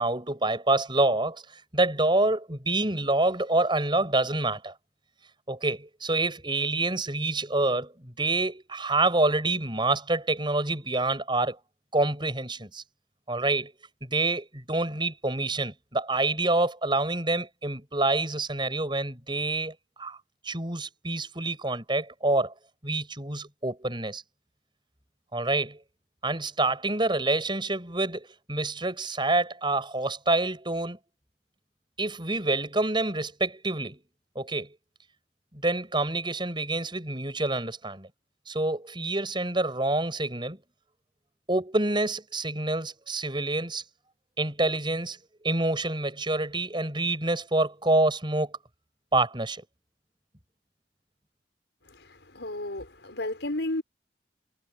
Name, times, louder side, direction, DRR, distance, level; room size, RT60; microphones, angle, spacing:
voice 1, 0.0-4.7 5.5-11.6 11.9-12.8 13.3-13.7 14.0-20.2 20.4-22.5 22.8-24.2 25.3-25.8 26.2-31.0 32.0-34.0 34.3-34.8 35.5-38.1 38.5-40.6 41.5-43.8 44.4-45.2 45.4-48.6 49.1-49.6, right 2 dB, 25° right, 7.6 m, -27 dB
voice 2, 51.9-53.8, left 1 dB, 85° left, 5.2 m, -33 dB
head